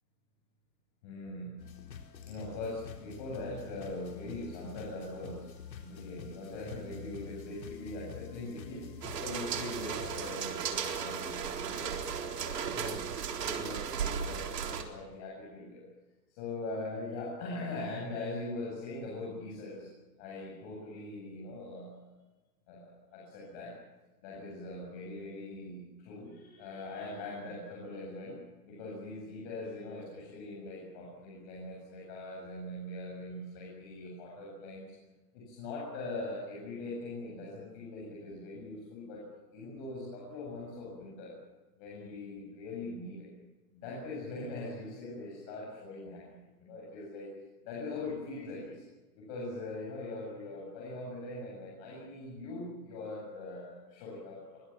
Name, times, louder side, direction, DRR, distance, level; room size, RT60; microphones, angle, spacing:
voice 1, 1.0-1.6 2.2-5.5 5.8-15.8 16.3-19.9 20.2-22.0 22.7-23.7 24.2-34.9 35.3-39.2 39.5-41.3 41.8-43.3 43.7-46.2 46.6-47.3 47.6-48.8 49.1-54.6, left 2 dB, 30° left, -4 dB, 8.0 m, -41 dB
sound 1, 1.6-10.4, left 7 dB, 85° left, 4.4 m, -48 dB
sound 2, 9.0-14.8, right 7 dB, 70° right, 4.1 m, -35 dB
25.5 x 24.0 x 7.5 m, 1.1 s
hypercardioid pair, 170°, 49 cm